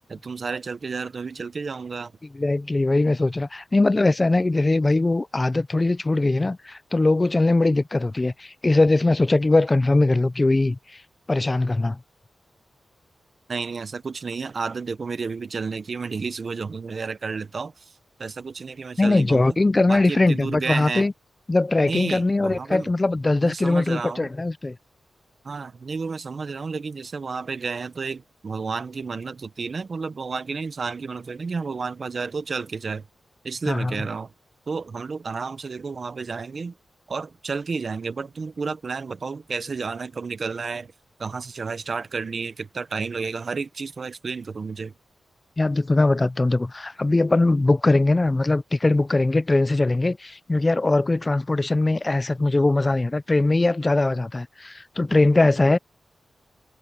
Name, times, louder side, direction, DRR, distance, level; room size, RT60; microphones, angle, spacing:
voice 1, 0.1-2.1 13.5-19.5 19.9-21.1 21.8-22.9 23.4-24.3 25.4-33.1 33.4-34.3 34.7-36.7 37.1-40.9 41.2-44.9, right 4 dB, 50° right, 1.0 m, -31 dB
voice 2, 2.4-10.8 11.3-12.0 19.0-21.1 21.5-24.8 33.7-33.9 45.6-55.8, left 2 dB, 25° left, 0.5 m, -21 dB
wide cardioid pair, 95°, 0 cm